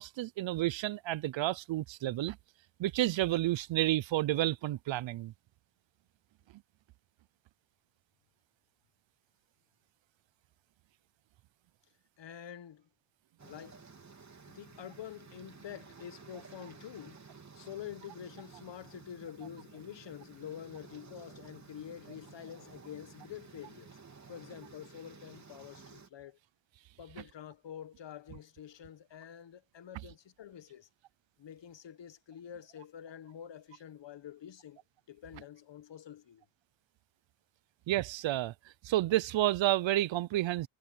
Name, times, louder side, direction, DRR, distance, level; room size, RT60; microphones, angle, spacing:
voice 1, 0.0-2.4 2.8-5.3 37.9-38.5 38.8-40.7, right 15 dB, 65° right, 0.7 m, -30 dB
voice 2, 12.2-12.9 13.4-13.9 14.5-17.2 17.5-24.0 24.3-26.4 27.0-30.9 31.4-34.8 35.1-36.4, left 9 dB, 60° left, 1.5 m, -47 dB
sound 1, 13.4-26.1, right 5 dB, 35° right, 3.7 m, -54 dB
cardioid pair, 65°, 48 cm